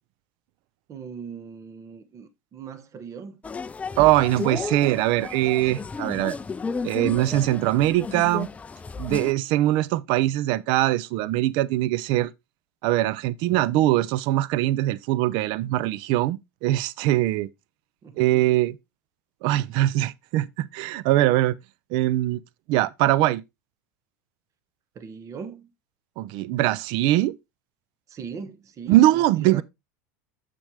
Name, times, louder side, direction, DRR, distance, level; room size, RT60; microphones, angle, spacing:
voice 1, 0.9-3.4 18.0-18.6 24.9-25.7 28.1-29.6, right 6 dB, 35° right, 1.1 m, -40 dB
sound 1, 3.4-9.3, left 4 dB, 15° left, 0.4 m, -33 dB
voice 2, 4.0-6.4 6.8-8.5 9.0-12.3 12.8-17.5 18.2-18.8 19.4-21.5 21.9-22.4 22.7-23.4 26.2-27.4 28.9-29.6, right 15 dB, 60° right, 0.5 m, -22 dB
7.1 x 6.8 x 3.4 m
supercardioid pair, 115°, 10 cm